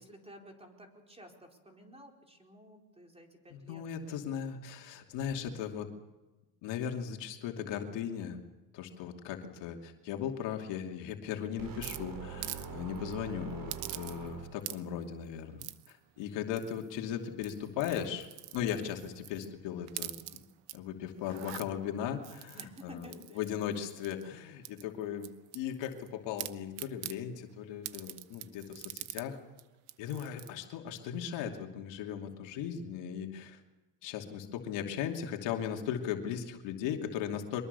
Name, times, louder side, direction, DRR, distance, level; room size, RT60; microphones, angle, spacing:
voice 1, 0.0-3.8 20.0-20.5 22.5-23.4, equal, 15° right, 2 dB, 4.5 m, -53 dB
voice 2, 3.5-5.9 6.6-8.4 8.7-15.6 15.9-18.3 18.5-20.4 20.7-23.1 23.4-29.4 30.0-33.6 34.0-37.6, left 9 dB, 70° left, 3 dB, 2.8 m, -37 dB
sound 1, 11.6-14.8, right 6 dB, 45° right, 4.3 m, -43 dB
sound 2, 11.8-12.7 13.0-13.1 13.7-14.3 14.6-15.0 15.6-15.9 16.6-17.0 17.3-19.5 19.9-20.8 21.2-21.7 22.2-24.2 24.6-26.1 26.4-27.2 27.8-29.3 29.6-29.7 29.9-30.5, right 17 dB, 85° right, 1.1 m, -44 dB
23.5 x 21.5 x 6.9 m, 1.1 s
cardioid pair, 110°, 44 cm